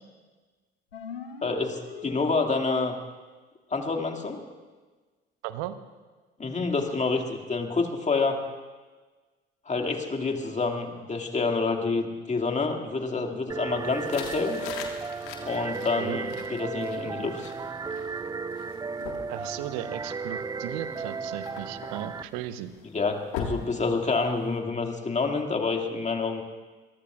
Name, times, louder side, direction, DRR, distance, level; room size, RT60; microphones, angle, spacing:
sound 1, 0.9-2.9, left 6 dB, 85° left, 0.8 m, -42 dB
voice 1, 1.4-3.0 3.7-4.4 6.4-8.4 9.7-14.6 15.4-17.5 22.9-26.4, left 4 dB, 25° left, 4 dB, 2.2 m, -28 dB
voice 2, 5.4-5.8 16.0-16.2 19.3-22.7, right 13 dB, 65° right, 12 dB, 1.0 m, -36 dB
sound 2, 13.5-22.2, right 4 dB, 15° right, 0.4 m, -35 dB
sound 3, 13.9-24.6, left 6 dB, 65° left, 1.8 m, -42 dB
25.5 x 22.5 x 2.4 m, 1.3 s
figure-of-eight pair, 50°, 29 cm